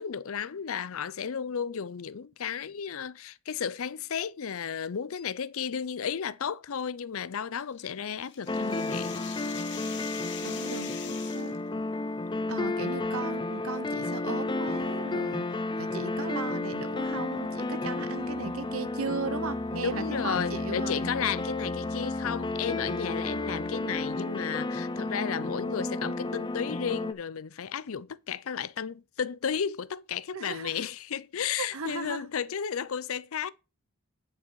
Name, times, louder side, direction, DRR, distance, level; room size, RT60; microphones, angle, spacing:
voice 1, 0.0-9.1 11.8-11.9 19.8-33.5, left 7 dB, 70° left, 0.5 m, -33 dB
sound 1, 7.7-11.6, left 9 dB, 55° left, 1.3 m, -43 dB
sound 2, 8.5-27.1, left 2 dB, 20° left, 0.5 m, -32 dB
voice 2, 10.4-11.6 12.5-15.4 15.8-21.1 30.3-30.8 31.6-32.3, right 4 dB, 75° right, 0.9 m, -37 dB
sound 3, 16.8-24.3, right 2 dB, 30° right, 1.7 m, -49 dB
9.8 x 5.7 x 4.7 m
head